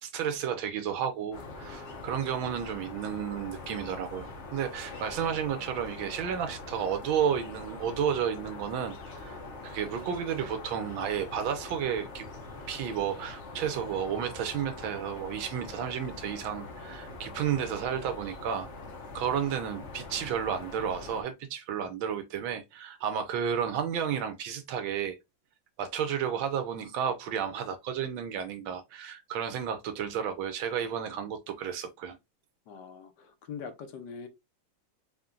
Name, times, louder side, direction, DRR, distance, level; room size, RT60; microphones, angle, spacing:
voice 1, 0.0-12.2 12.7-18.7 19.1-25.2 25.8-32.2, right 8 dB, 80° right, 1.5 m, -32 dB
sound 1, 1.3-21.2, left 3 dB, 50° left, 0.9 m, -43 dB
voice 2, 32.7-34.3, left 6 dB, 65° left, 1.2 m, -42 dB
4.3 x 2.2 x 3.7 m
omnidirectional pair, 2.2 m